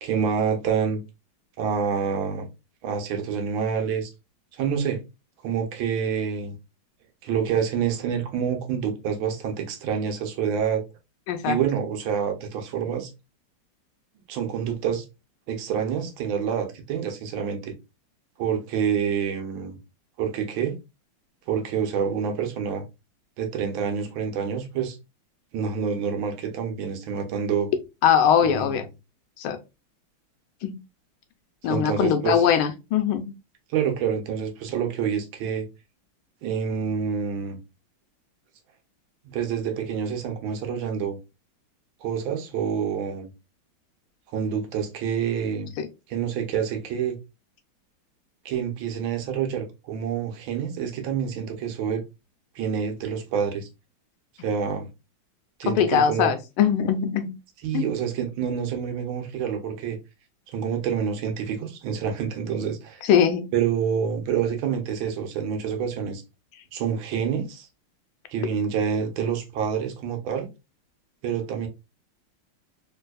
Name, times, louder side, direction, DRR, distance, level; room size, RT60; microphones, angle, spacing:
voice 1, 0.0-1.0 1.6-2.5 2.8-4.1 4.5-5.0 5.4-6.6 7.2-10.8 11.4-13.1 14.3-15.0 15.5-17.7 18.4-19.8 20.2-20.8 21.5-22.8 23.4-25.0 25.5-27.7 28.4-28.8 31.7-32.4 33.7-35.7 36.4-37.6 39.2-41.2 42.0-43.3 44.3-45.7 46.1-47.2 48.4-52.0 52.5-53.7 54.4-54.9 55.6-56.3 57.6-60.0 60.5-63.0 63.5-66.2 66.7-67.7 68.3-70.5 71.2-71.7, right 7 dB, 75° right, 1.5 m, -27 dB
voice 2, 11.3-11.6 28.0-28.8 29.4-29.6 30.6-30.8 31.6-33.3 45.8-45.9 55.7-57.3 57.7-57.9 63.0-63.4, left 8 dB, 90° left, 1.5 m, -21 dB
3.4 x 3.1 x 2.2 m
omnidirectional pair, 2.3 m